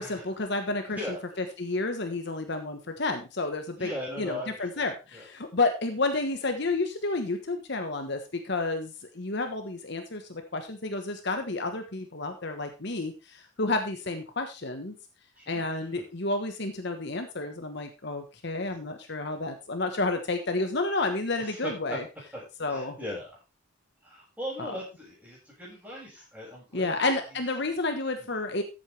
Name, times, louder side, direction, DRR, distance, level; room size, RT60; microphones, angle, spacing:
voice 1, 0.0-1.0 1.4-3.9 4.2-14.9 15.5-22.0 22.6-23.0 24.6-24.7 26.7-28.6, left 2 dB, 55° left, 6 dB, 1.3 m, -30 dB
voice 2, 3.8-5.2 15.4-16.0 21.4-22.0 22.3-23.4 24.0-27.1, left 1 dB, 10° right, -4 dB, 6.4 m, -39 dB
14.0 x 8.2 x 3.4 m, 0.29 s
head